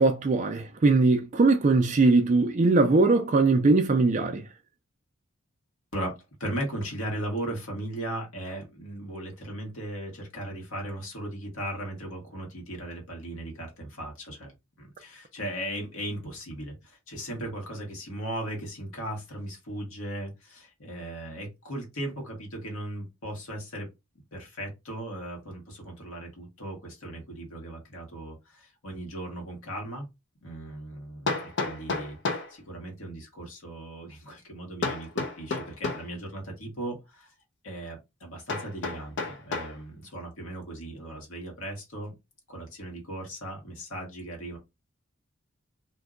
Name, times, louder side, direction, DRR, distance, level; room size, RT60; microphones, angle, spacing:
voice 1, 0.0-4.4, right 3 dB, 35° right, 0.3 m, -21 dB
voice 2, 5.9-14.5 14.8-23.9 24.3-30.0 30.4-32.2 32.5-37.3 37.6-42.2 42.5-44.6, right 1 dB, 85° left, 1.2 m, -37 dB
Hammer, 29.7-29.8 31.3-32.5 34.8-36.1 38.5-39.8, left 3 dB, 55° left, 0.5 m, -31 dB
2.6 x 2.2 x 3.6 m
head